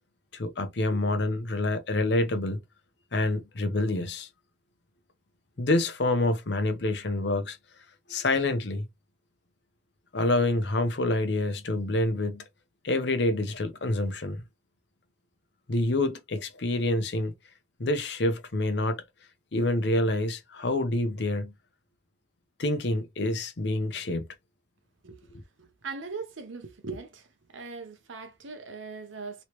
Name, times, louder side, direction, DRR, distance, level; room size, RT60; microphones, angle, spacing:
voice 1, 0.3-2.6 3.1-4.3 5.6-7.6 8.1-8.9 10.1-12.4 12.8-14.4 15.7-17.3 17.8-19.0 19.5-21.5 22.6-24.2, left 2 dB, 60° left, 0.7 m, -27 dB
voice 2, 25.6-27.3 27.5-29.4, right 4 dB, 80° right, 0.9 m, -40 dB
3.1 x 3.0 x 3.0 m
head